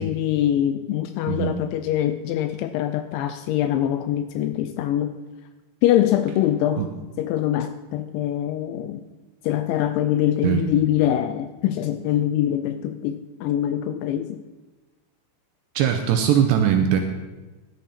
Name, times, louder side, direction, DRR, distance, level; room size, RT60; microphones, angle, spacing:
voice 1, 0.0-5.2 5.8-6.8 7.2-9.0 9.4-14.4, left 11 dB, 85° left, 10 dB, 2.7 m, -23 dB
voice 2, 1.3-1.6 6.8-6.9 10.4-10.7 15.8-17.0, right 9 dB, 80° right, 5 dB, 2.6 m, -20 dB
15.0 x 11.0 x 4.3 m, 1.2 s
omnidirectional pair, 5.7 m